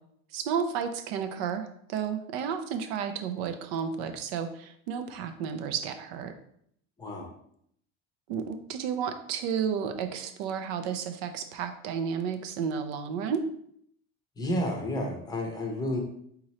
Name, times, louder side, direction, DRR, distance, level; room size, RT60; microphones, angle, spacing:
voice 1, 0.3-6.3 8.3-13.4, right 7 dB, 85° right, 8 dB, 0.6 m, -32 dB
voice 2, 7.0-7.3 14.4-16.0, left 1 dB, 15° left, 1 dB, 0.6 m, -31 dB
3.8 x 2.9 x 4.2 m, 0.68 s
cardioid pair, 160°, 30 cm